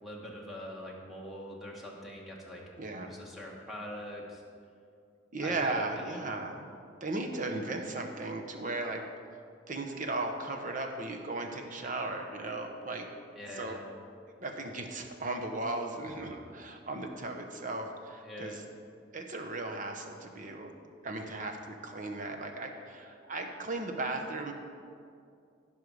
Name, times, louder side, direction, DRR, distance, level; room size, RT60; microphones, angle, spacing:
voice 1, 0.0-2.6 2.9-4.4 5.4-6.2 13.3-13.8 18.2-18.6, left 1 dB, ahead, -3 dB, 1.5 m, -43 dB
voice 2, 2.8-3.1 5.3-6.7 7.0-9.0 9.7-13.1 13.6-13.8 14.4-18.6 19.1-20.7 21.0-24.5, right 2 dB, 40° right, 4 dB, 1.0 m, -36 dB
16.0 x 5.5 x 4.8 m, 2.4 s
head